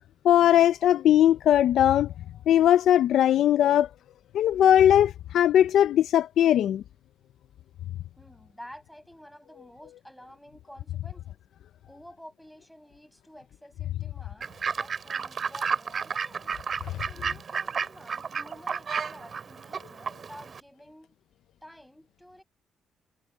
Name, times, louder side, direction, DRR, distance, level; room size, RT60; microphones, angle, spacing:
voice 1, 0.2-2.1 2.5-3.9 4.3-6.8, left 11 dB, 75° left, 0.5 m, -20 dB
voice 2, 8.2-11.4 11.8-16.6 17.0-21.2 21.6-22.4, equal, ahead, 8.0 m, -50 dB
Fowl / Bird, 14.4-20.6, right 6 dB, 45° right, 3.6 m, -32 dB
cardioid pair, 90°, 0 cm